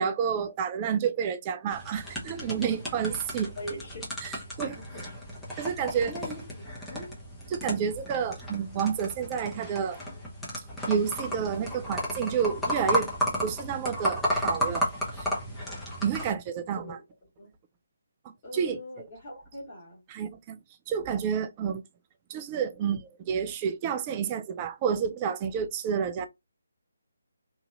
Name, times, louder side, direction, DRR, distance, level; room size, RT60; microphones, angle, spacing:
voice 1, 0.0-3.5 4.2-4.8 5.6-6.1 7.5-10.0 10.9-13.2 13.4-14.8 15.1-15.3 16.0-17.0 18.5-19.0 20.1-20.6 20.9-21.8 22.3-26.3, right 7 dB, 25° right, 0.4 m, -29 dB
sound 1, 1.7-16.3, equal, 5° left, 0.8 m, -33 dB
voice 2, 3.6-5.1 5.9-7.1 16.7-17.0 17.4-17.5 18.4-20.0, equal, 25° left, 1.4 m, -42 dB
2.9 x 2.6 x 2.4 m
figure-of-eight pair, 150°, 0 cm